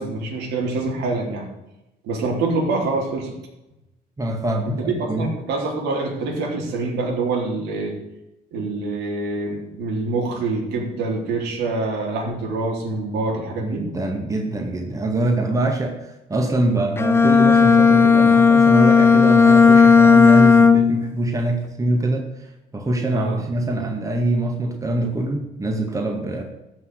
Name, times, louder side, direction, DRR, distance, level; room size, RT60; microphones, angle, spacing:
voice 1, 0.0-1.5 2.0-3.3 4.8-7.9 8.5-13.9 23.1-23.4, right 3 dB, 80° right, 0 dB, 3.7 m, -25 dB
voice 2, 4.2-5.3 13.7-26.4, right 1 dB, 20° right, 2 dB, 2.0 m, -24 dB
Bowed string instrument, 17.0-21.1, left 5 dB, 15° left, 0.8 m, -13 dB
14.0 x 6.2 x 8.1 m, 0.94 s
cardioid pair, 110°, 17 cm